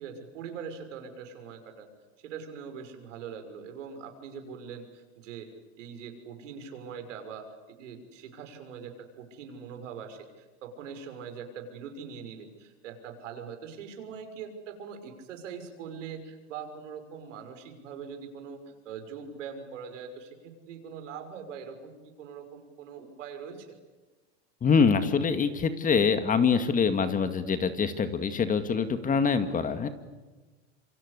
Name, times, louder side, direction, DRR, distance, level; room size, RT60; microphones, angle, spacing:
voice 1, 0.0-1.9 2.2-5.5 5.8-18.6 18.8-23.7, right 6 dB, 75° right, 6 dB, 6.2 m, -42 dB
voice 2, 24.6-29.9, left 5 dB, 20° left, 10 dB, 2.1 m, -25 dB
27.5 x 25.0 x 8.3 m, 1.2 s
hypercardioid pair, 120°, 37 cm